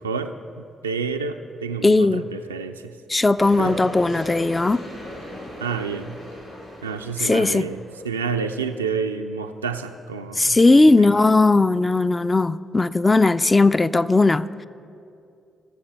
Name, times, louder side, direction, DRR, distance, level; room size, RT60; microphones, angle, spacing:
voice 1, 0.0-2.9 3.6-3.8 5.6-6.2 6.8-11.2, right 5 dB, 90° right, 0.3 m, -29 dB
voice 2, 1.8-2.2 3.1-4.8 7.2-7.6 10.4-14.5, left 3 dB, 25° left, 0.3 m, -17 dB
sound 1, 3.4-8.3, left 1 dB, 80° left, 2.8 m, -37 dB
18.0 x 7.2 x 3.4 m
figure-of-eight pair, 40°, 0 cm